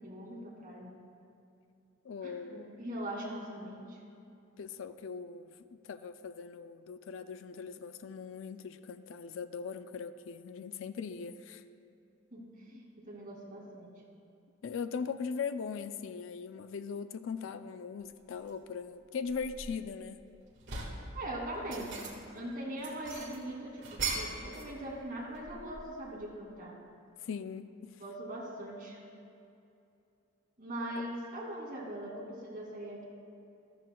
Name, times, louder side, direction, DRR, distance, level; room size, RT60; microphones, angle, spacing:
voice 1, 0.0-0.9 2.2-4.0 12.3-13.9 21.1-26.8 28.0-29.0 30.6-33.0, right 1 dB, 45° right, -3 dB, 2.5 m, -41 dB
voice 2, 2.0-2.7 4.6-11.6 14.6-20.2 24.0-24.2 27.2-28.0, left 6 dB, 65° left, 11 dB, 0.4 m, -40 dB
sound 1, 18.3-18.5 19.1-20.1 20.4-21.1 21.5-22.4 22.8-24.7 25.0-26.0, right 4 dB, 60° right, 1.7 m, -40 dB
13.5 x 13.5 x 2.3 m, 2.6 s
head